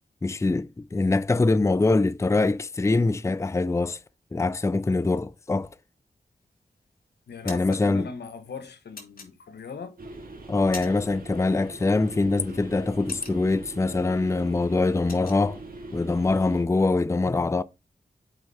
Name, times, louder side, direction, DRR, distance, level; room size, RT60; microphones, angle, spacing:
voice 1, 0.2-4.0 4.3-5.7 7.5-8.1 10.5-15.6 15.9-17.6, left 3 dB, 15° left, 0.5 m, -23 dB
sound 1, 6.4-6.9 7.2-7.8 9.0-9.8 10.3-11.2 11.5-11.7 12.1-13.8 14.2-14.4 14.6-15.4, left 3 dB, 60° left, 1.9 m, -43 dB
voice 2, 7.3-10.0, left 5 dB, 90° left, 1.1 m, -40 dB
sound 2, 10.0-16.6, right 2 dB, 60° right, 2.1 m, -42 dB
8.2 x 4.7 x 4.1 m
cardioid pair, 50°, 17 cm